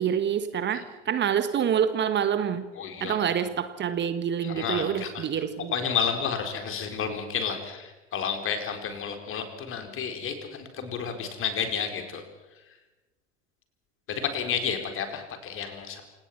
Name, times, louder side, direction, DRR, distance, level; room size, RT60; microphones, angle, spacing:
voice 1, 0.0-2.6 3.0-5.7, right 8 dB, 30° right, 11 dB, 1.5 m, -27 dB
voice 2, 2.7-3.4 4.4-5.3 5.7-12.2 14.1-16.0, left 7 dB, 35° left, 6 dB, 4.1 m, -31 dB
28.0 x 18.0 x 5.9 m, 1.1 s
figure-of-eight pair, 75°, 37 cm